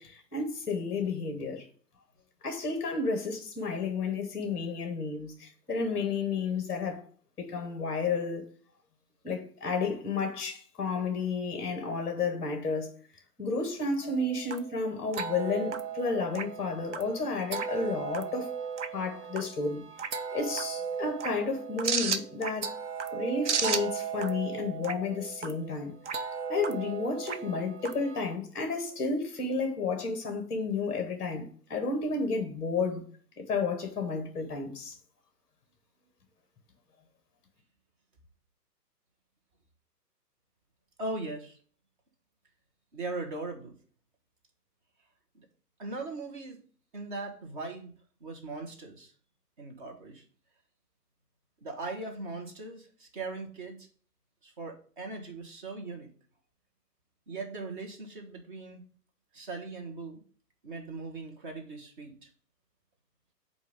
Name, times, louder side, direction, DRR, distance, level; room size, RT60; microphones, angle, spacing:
voice 1, 0.0-1.6 2.4-7.1 7.4-8.4 9.2-12.9 13.4-18.6 18.9-19.9 20.3-22.8 23.1-26.0 26.5-33.0 33.4-34.9, left 4 dB, 10° left, 0.9 m, -32 dB
sound 1, 14.0-28.3, right 6 dB, 45° right, 0.5 m, -35 dB
voice 2, 41.0-41.6 42.9-43.7 45.3-45.4 45.8-46.6 46.9-47.9 48.2-49.1 49.6-50.2 51.6-53.9 54.4-56.1 57.3-58.8 59.3-60.2 60.6-62.3, right 3 dB, 30° right, 1.3 m, -39 dB
8.1 x 2.7 x 5.2 m
figure-of-eight pair, 130°, 49 cm